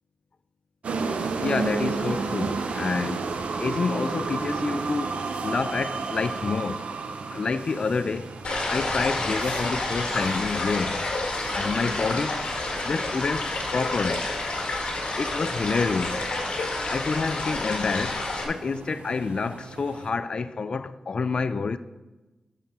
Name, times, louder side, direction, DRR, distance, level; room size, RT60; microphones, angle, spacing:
sound 1, 0.8-20.1, right 4 dB, 80° right, 0.7 m, -34 dB
voice 1, 1.4-3.3 3.6-6.9 7.3-8.4 8.7-11.0 11.5-12.4 12.8-14.3 15.2-16.3 16.9-21.8, left 4 dB, 45° left, 0.3 m, -28 dB
sound 2, 8.4-18.4, left 2 dB, 65° left, 1.7 m, -29 dB
10.5 x 6.5 x 4.3 m
wide cardioid pair, 130°, 2 cm